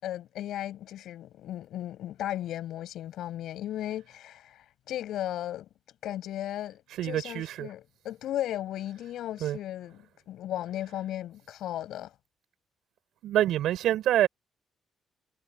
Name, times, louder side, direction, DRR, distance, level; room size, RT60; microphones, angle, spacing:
voice 1, 0.0-5.7 6.0-12.1, left 12 dB, 80° left, 7.6 m, -36 dB
voice 2, 7.0-7.7 9.4-9.6 13.2-14.3, right 12 dB, 80° right, 7.5 m, -26 dB
cardioid pair, 90°, 0 cm